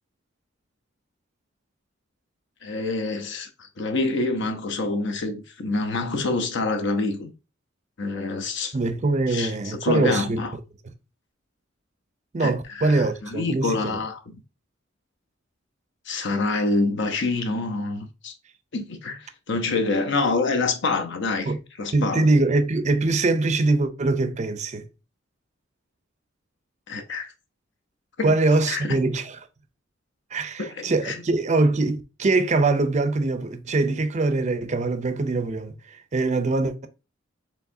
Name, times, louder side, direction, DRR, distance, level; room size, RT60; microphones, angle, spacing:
voice 1, 2.6-3.5 3.8-7.3 8.0-8.7 9.3-10.5 12.4-14.2 16.1-18.3 18.7-21.5 21.8-22.3 26.9-27.3 28.2-28.4 28.7-29.0 30.6-31.2, left 3 dB, 65° left, 0.7 m, -26 dB
voice 2, 8.7-10.4 12.3-14.0 21.5-21.6 21.9-24.9 28.2-29.4 30.3-36.9, right 3 dB, 35° right, 0.5 m, -23 dB
4.7 x 3.5 x 2.6 m
head